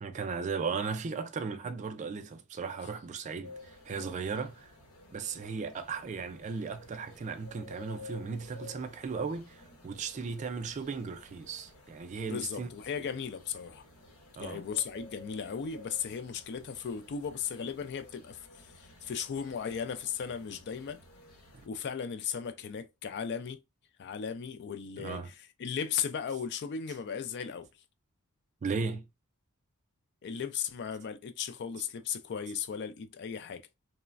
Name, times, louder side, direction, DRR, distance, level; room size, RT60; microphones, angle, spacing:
voice 1, 0.0-4.7 5.1-12.7 14.4-14.7 25.0-25.3 28.6-29.0, right 5 dB, 35° right, 0.3 m, -36 dB
sound 1, 3.4-21.7, left 2 dB, 85° left, 0.9 m, -53 dB
voice 2, 12.2-13.8 14.4-21.0 21.7-23.6 24.0-27.7 30.2-33.6, left 7 dB, 50° left, 0.4 m, -36 dB
3.1 x 2.1 x 2.4 m
head